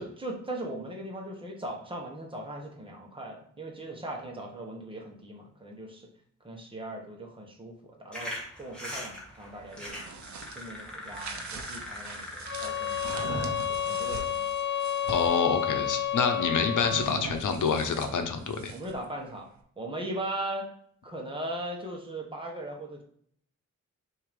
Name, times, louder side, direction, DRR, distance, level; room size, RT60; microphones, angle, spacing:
voice 1, 0.0-6.1 6.4-10.0 10.5-13.1 13.7-14.5 18.7-19.5 19.8-20.7 21.0-23.0, right 1 dB, 15° right, 0 dB, 1.2 m, -39 dB
sound 1, 8.1-14.2, left 1 dB, 5° left, 1.5 m, -42 dB
sound 2, 9.6-15.4 16.8-19.1, right 4 dB, 65° right, 0.8 m, -41 dB
sound 3, 12.5-17.2, left 10 dB, 40° left, 0.6 m, -30 dB
voice 2, 15.1-18.7, left 5 dB, 80° left, 6 dB, 0.9 m, -27 dB
6.6 x 2.8 x 5.1 m, 0.63 s
wide cardioid pair, 175°, 30 cm